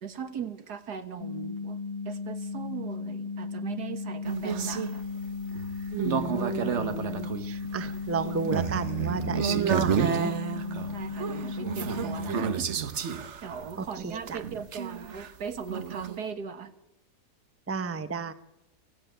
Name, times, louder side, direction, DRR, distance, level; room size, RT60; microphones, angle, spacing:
voice 1, 0.0-1.8 2.1-5.0 10.9-12.7 13.4-16.7, right 6 dB, 80° right, 10 dB, 2.1 m, -39 dB
sound 1, 1.2-12.6, left 4 dB, 35° left, 0.9 m, -36 dB
sound 2, 4.2-16.2, right 7 dB, 50° right, 1.2 m, -31 dB
voice 2, 5.9-10.4 13.8-14.4 17.7-18.3, right 4 dB, 10° right, 12 dB, 0.7 m, -33 dB
25.5 x 16.5 x 9.2 m, 0.98 s
omnidirectional pair, 1.7 m